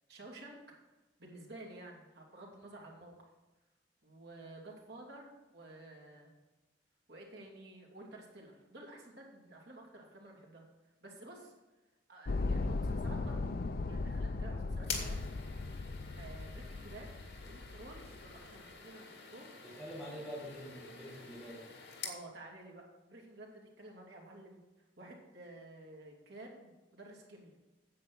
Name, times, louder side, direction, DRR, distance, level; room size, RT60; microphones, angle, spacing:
voice 1, 0.1-0.6 1.2-3.3 4.0-6.3 7.1-10.6 11.0-11.5 12.1-13.5 13.9-15.2 16.1-17.1 17.4-19.5 22.0-24.6 25.0-27.6, right 2 dB, 65° right, -2 dB, 2.7 m, -52 dB
sound 1, 12.2-18.6, left 3 dB, 55° left, 0.5 m, -37 dB
sound 2, 14.8-22.2, left 5 dB, 80° left, 2.1 m, -47 dB
voice 2, 19.6-21.8, equal, 5° right, -7 dB, 4.6 m, -46 dB
9.5 x 7.8 x 6.2 m, 1.1 s
head